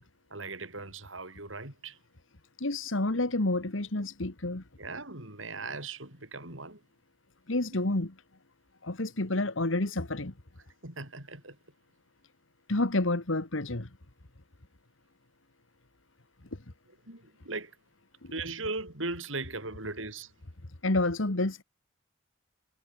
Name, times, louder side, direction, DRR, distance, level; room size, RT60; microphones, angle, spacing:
voice 1, 0.3-2.0 4.8-6.8 10.8-11.6 16.9-17.7 18.3-20.3, right 3 dB, 80° right, 7.8 m, -38 dB
voice 2, 2.6-4.6 7.5-8.1 8.8-10.3 12.7-13.9 18.2-18.3 20.8-21.6, left 2 dB, 80° left, 1.9 m, -29 dB
head